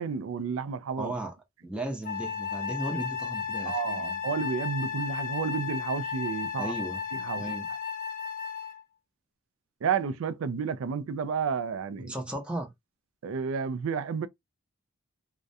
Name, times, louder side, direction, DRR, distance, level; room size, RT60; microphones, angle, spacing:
voice 1, 0.0-1.1 3.6-6.7 7.1-7.6 9.8-12.1 13.2-14.3, right 6 dB, 80° right, 0.4 m, -31 dB
voice 2, 1.0-1.3 1.6-4.2 6.6-7.0 7.4-7.7 12.0-12.7, right 1 dB, 5° right, 0.7 m, -35 dB
Wind instrument woodwind instrument, 2.0-8.8, left 6 dB, 40° left, 0.4 m, -34 dB
2.3 x 2.1 x 2.6 m
head